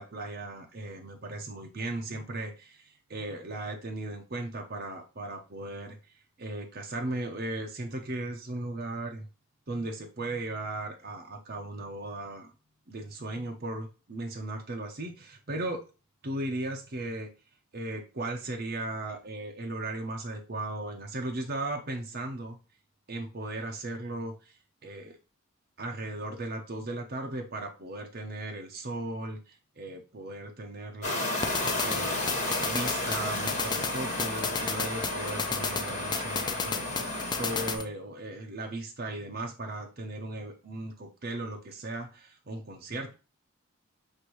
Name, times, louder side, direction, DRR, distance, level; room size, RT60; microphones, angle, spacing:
voice 1, 0.0-6.0 6.4-9.3 9.7-12.5 12.9-15.8 16.2-17.3 17.7-22.6 23.1-25.2 25.8-31.3 31.8-32.3 32.6-37.0 37.4-43.1, right 2 dB, 50° right, 2 dB, 0.8 m, -37 dB
sound 1, 31.0-37.8, left 1 dB, 35° left, 1.6 m, -32 dB
sound 2, 31.4-37.8, left 5 dB, 20° left, 0.4 m, -34 dB
6.5 x 2.6 x 3.0 m, 0.31 s
head